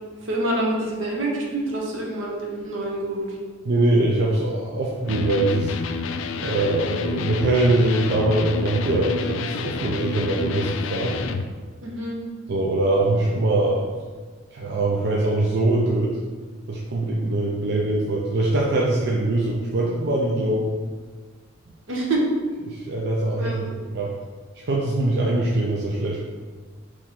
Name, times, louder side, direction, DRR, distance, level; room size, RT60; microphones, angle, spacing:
voice 1, 0.2-3.4 11.8-12.2 21.9-22.2 23.4-23.8, right 1 dB, 80° right, -2 dB, 1.0 m, -26 dB
voice 2, 3.6-5.7 6.4-11.2 12.5-13.9 14.5-16.2 16.7-20.7 22.7-23.6 23.9-24.1 24.6-26.2, right 2 dB, 55° right, -3 dB, 0.5 m, -22 dB
Electric guitar, 5.1-11.5, left 5 dB, 80° left, 0.3 m, -29 dB
4.5 x 3.1 x 3.7 m, 1.4 s
head